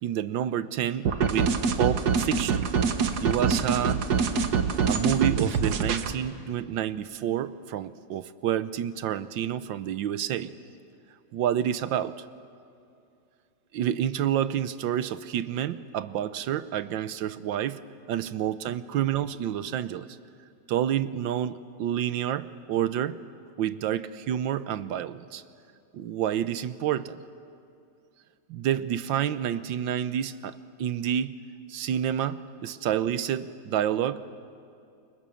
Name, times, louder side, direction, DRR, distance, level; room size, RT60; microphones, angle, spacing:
voice 1, 0.0-2.7 3.2-4.1 4.9-10.5 11.3-12.1 13.7-20.1 20.7-23.2 23.6-25.4 25.9-27.2 28.5-31.4 31.7-34.3, right 10 dB, 85° right, 14 dB, 1.5 m, -29 dB
sound 1, 1.1-6.1, right 5 dB, 60° right, 1.6 m, -25 dB
29.5 x 23.0 x 7.1 m, 2.5 s
omnidirectional pair, 2.0 m